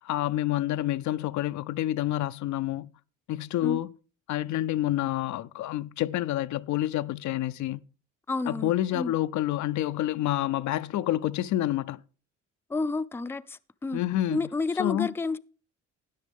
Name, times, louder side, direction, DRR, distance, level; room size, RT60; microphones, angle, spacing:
voice 1, 0.0-2.9 3.3-3.9 4.3-7.8 8.5-12.0 13.9-14.4 14.8-15.1, left 14 dB, 70° left, 0.5 m, -28 dB
voice 2, 8.3-9.1 12.7-14.0 14.3-15.4, left 3 dB, 10° left, 0.4 m, -30 dB
13.0 x 9.8 x 3.5 m
cardioid pair, 90°, 30 cm